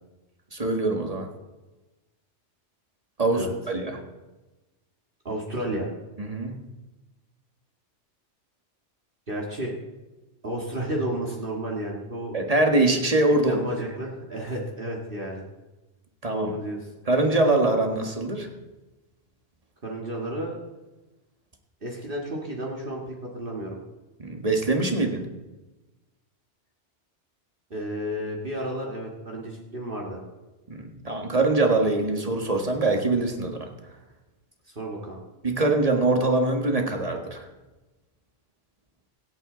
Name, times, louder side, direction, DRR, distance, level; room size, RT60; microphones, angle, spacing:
voice 1, 0.5-1.3 3.2-4.0 6.3-6.5 12.3-13.6 16.2-16.5 17.1-18.5 24.2-25.2 30.7-33.7 35.4-37.4, right 2 dB, 30° right, 3 dB, 1.8 m, -23 dB
voice 2, 5.2-5.9 9.3-9.7 10.4-12.3 13.4-15.4 16.3-16.9 19.8-20.6 21.8-23.8 27.7-30.2 34.6-35.2, right 1 dB, 45° right, -2 dB, 2.1 m, -32 dB
24.5 x 8.9 x 3.9 m, 1.1 s
omnidirectional pair, 1.2 m